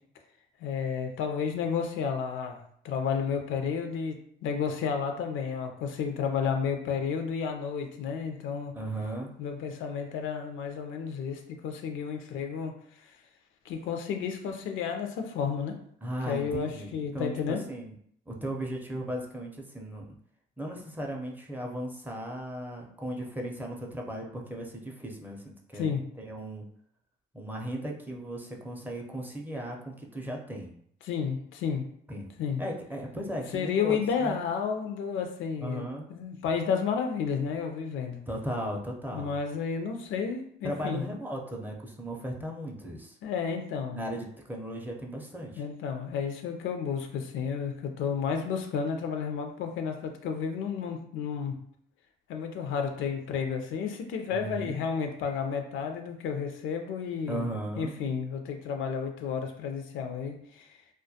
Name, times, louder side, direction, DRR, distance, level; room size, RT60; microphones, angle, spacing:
voice 1, 0.6-8.8 9.4-13.1 13.7-15.8 16.3-17.6 25.7-26.0 31.0-31.8 32.4-32.6 33.5-38.2 39.1-41.0 43.2-44.0 45.6-51.5 52.3-57.5 57.8-60.7, left 6 dB, 80° left, 5 dB, 0.4 m, -32 dB
voice 2, 8.7-9.3 16.0-17.9 18.3-20.1 20.6-25.4 25.7-25.9 26.2-26.6 27.3-30.7 32.1-32.3 32.6-34.4 35.6-36.1 38.3-39.4 40.6-43.2 43.9-45.6 54.3-54.8 57.3-58.0, right 1 dB, 10° right, 0 dB, 0.5 m, -36 dB
2.2 x 2.1 x 2.7 m, 0.66 s
cardioid pair, 90°, 20 cm